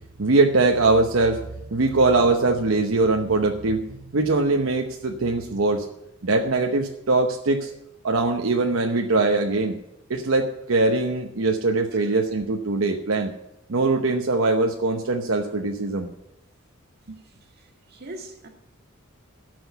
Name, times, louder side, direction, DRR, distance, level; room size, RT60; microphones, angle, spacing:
voice 1, 0.2-1.4 1.7-5.9 6.2-7.7 8.0-9.8 10.1-13.3 13.7-16.1, right 3 dB, 75° right, 0.9 m, -22 dB
voice 2, 17.2-18.5, right 1 dB, 50° right, 1.8 m, -43 dB
12.5 x 6.2 x 8.1 m
head